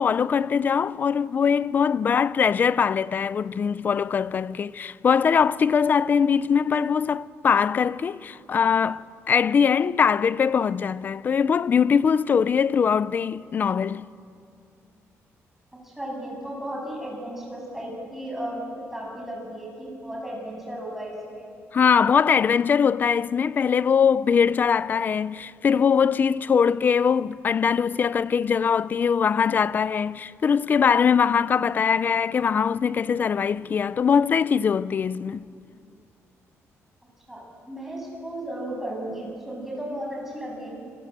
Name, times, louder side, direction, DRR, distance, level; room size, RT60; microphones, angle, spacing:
voice 1, 0.0-14.1 21.7-35.5, left 6 dB, 35° left, 0.5 m, -22 dB
voice 2, 15.8-21.5 37.3-40.8, right 1 dB, 5° right, 7.6 m, -35 dB
28.0 x 23.5 x 8.1 m
cardioid pair, 150°, 5 cm